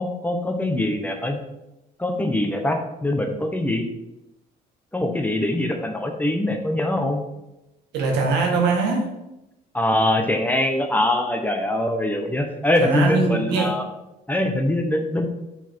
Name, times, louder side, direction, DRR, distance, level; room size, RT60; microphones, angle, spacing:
voice 1, 0.0-1.4 2.0-3.8 4.9-7.2 9.7-13.8 14.3-15.3, left 1 dB, 10° left, 4 dB, 0.8 m, -23 dB
voice 2, 7.9-9.1 12.8-13.7, right 4 dB, 85° right, 1 dB, 1.6 m, -21 dB
5.6 x 4.2 x 4.4 m, 0.91 s
cardioid pair, 110°, 17 cm